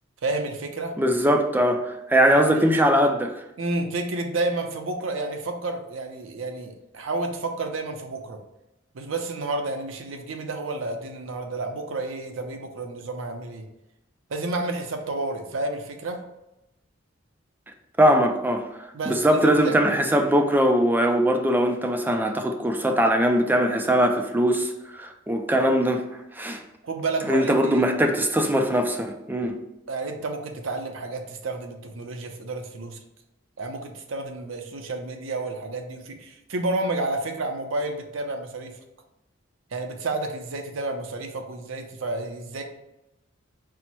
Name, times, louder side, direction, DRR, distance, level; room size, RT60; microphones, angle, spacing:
voice 1, 0.2-1.0 2.4-2.7 3.6-8.4 8.9-13.7 14.3-16.2 18.9-19.7 26.8-27.9 29.9-33.0 33.6-38.7 39.7-42.6, right 2 dB, 70° right, 5 dB, 0.6 m, -30 dB
voice 2, 1.0-3.3 18.0-18.7 19.1-26.0 26.4-26.6 27.3-29.6, equal, 10° right, 4 dB, 0.3 m, -21 dB
4.4 x 2.1 x 4.2 m, 0.92 s
head